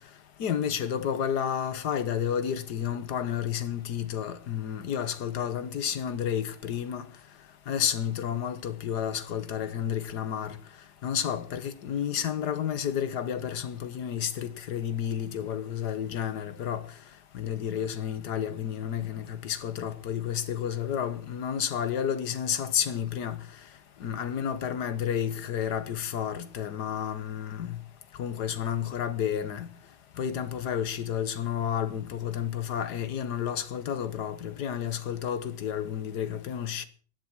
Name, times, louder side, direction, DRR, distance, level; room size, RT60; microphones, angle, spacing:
voice 1, 0.4-7.0 7.7-10.6 11.0-16.8 17.3-23.4 24.0-27.8 28.2-29.7 30.2-36.9, left 9 dB, 75° left, 1.8 m, -31 dB
16.0 x 10.5 x 6.1 m
omnidirectional pair, 1.8 m